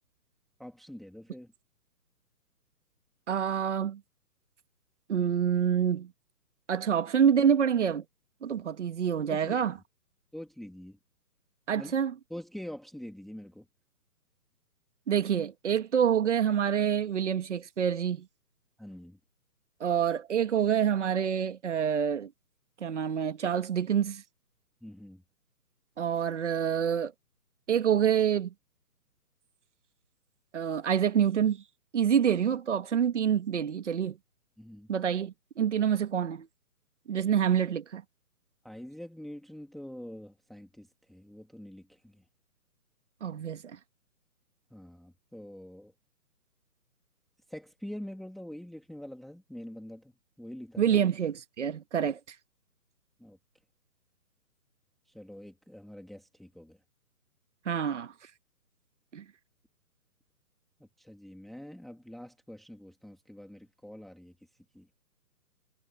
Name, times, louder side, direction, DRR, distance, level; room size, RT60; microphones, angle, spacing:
voice 1, 0.6-1.5 9.3-9.8 10.3-11.0 11.8-11.9 12.3-13.7 18.8-19.2 24.8-25.2 34.6-34.9 38.6-42.2 44.7-45.9 47.5-50.1 50.4-51.0 53.2-53.4 55.1-56.8 61.0-64.3 64.7-64.9, equal, ahead, 2.0 m, -45 dB
voice 2, 3.3-4.0 5.1-6.1 6.7-8.0 8.4-9.7 11.7-12.1 15.1-18.3 19.8-22.3 22.8-24.2 26.0-27.1 27.7-28.5 30.5-31.6 31.9-34.2 34.9-36.5 37.1-38.0 43.2-43.8 50.8-52.2 57.7-58.1 59.1-59.2, right 8 dB, 45° right, 2.1 m, -27 dB
hypercardioid pair, 160°, 48 cm